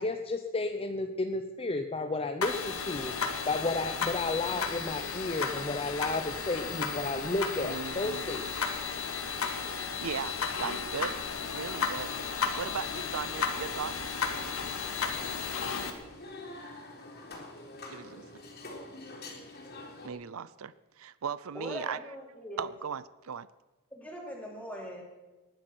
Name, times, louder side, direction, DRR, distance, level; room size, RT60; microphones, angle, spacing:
voice 1, 0.0-3.1 3.5-8.5, left 2 dB, 25° left, 7 dB, 0.8 m, -32 dB
sound 1, 2.4-15.9, left 5 dB, 80° left, 2.2 m, -34 dB
voice 2, 7.6-8.2 10.0-11.2 11.5-12.1 12.5-14.0 17.9-18.3 20.0-22.0 22.6-23.5, right 6 dB, 75° right, 18 dB, 0.5 m, -37 dB
sound 2, 10.8-20.1, left 2 dB, 50° left, 3.8 m, -47 dB
voice 3, 21.5-22.7 23.9-25.0, equal, 5° left, -2 dB, 4.5 m, -41 dB
20.0 x 11.5 x 6.1 m, 1.1 s
head